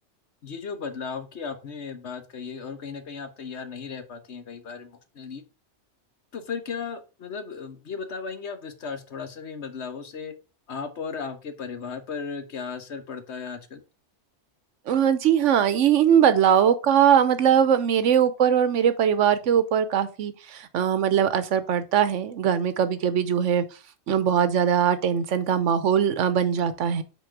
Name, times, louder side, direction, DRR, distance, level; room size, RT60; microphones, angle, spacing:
voice 1, 0.4-5.4 6.3-10.3 10.7-13.8, left 5 dB, 70° left, 1.3 m, -36 dB
voice 2, 14.9-23.6 24.1-27.0, right 8 dB, 85° right, 1.1 m, -21 dB
6.3 x 4.5 x 4.7 m
omnidirectional pair, 1.2 m